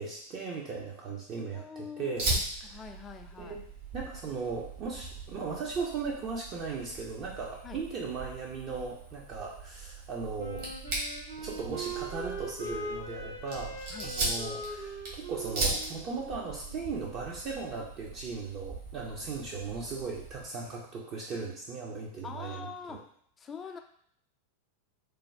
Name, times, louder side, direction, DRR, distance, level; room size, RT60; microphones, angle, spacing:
voice 1, 0.0-2.3 2.6-2.8 3.4-3.6 3.9-10.7 11.4-13.8 14.0-23.0, right 4 dB, 35° right, -2 dB, 0.5 m, -37 dB
voice 2, 1.5-2.2 2.6-3.6 7.6-7.8 13.9-14.1 22.2-23.0 23.4-23.8, left 6 dB, 20° left, 6 dB, 0.3 m, -43 dB
Fire, 2.2-20.4, right 2 dB, 50° right, 1.2 m, -39 dB
Wind instrument woodwind instrument, 10.4-17.1, right 2 dB, 85° right, 1.3 m, -41 dB
3.3 x 2.2 x 3.2 m, 0.65 s
figure-of-eight pair, 90°, 0 cm